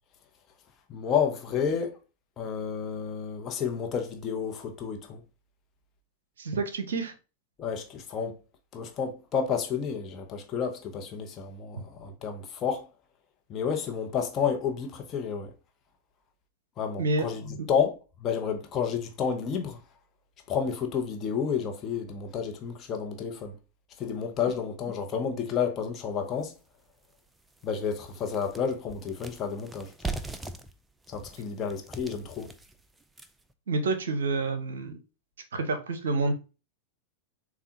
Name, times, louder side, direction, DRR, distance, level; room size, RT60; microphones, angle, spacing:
voice 1, 0.9-1.9 2.4-5.2 7.6-8.3 8.7-12.9 13.5-15.5 16.8-19.8 20.5-23.5 24.0-26.5 27.6-30.2 31.1-32.5, left 7 dB, 30° left, 0.9 m, -30 dB
voice 2, 6.4-7.1 17.0-17.3 17.6-17.7 24.5-24.6 33.7-35.0 35.5-36.3, right 3 dB, 65° right, 0.7 m, -28 dB
sound 1, 26.4-26.5 27.0-27.1 27.5-33.5, right 3 dB, 10° right, 0.4 m, -40 dB
6.9 x 2.4 x 2.8 m
figure-of-eight pair, 90°, 0 cm